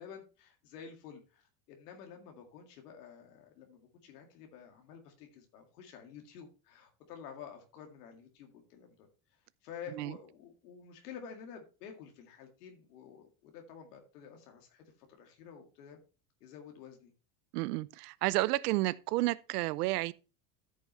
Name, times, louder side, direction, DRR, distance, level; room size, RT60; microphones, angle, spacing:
voice 1, 0.0-9.1 9.6-16.0 16.4-17.1, left 7 dB, 90° left, 2.1 m, -50 dB
voice 2, 17.5-20.1, right 19 dB, 90° right, 0.6 m, -31 dB
13.5 x 5.5 x 3.1 m
supercardioid pair, 115°, 45 cm